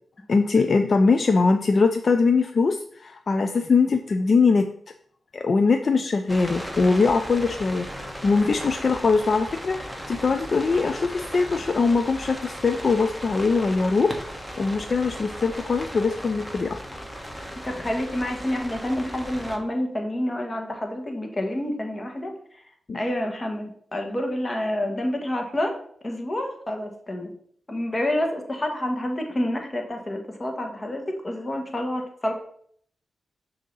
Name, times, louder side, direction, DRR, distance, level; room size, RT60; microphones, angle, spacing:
voice 1, 0.3-4.7 5.3-17.0 22.9-23.0, left 4 dB, 50° left, 6 dB, 0.4 m, -22 dB
sound 1, 6.3-19.6, equal, 5° left, 1.1 m, -37 dB
voice 2, 17.6-22.6 22.9-25.8 26.0-27.3 27.7-32.3, left 1 dB, 30° left, 3 dB, 1.3 m, -28 dB
6.2 x 2.8 x 5.4 m, 0.62 s
cardioid pair, 65°, 0 cm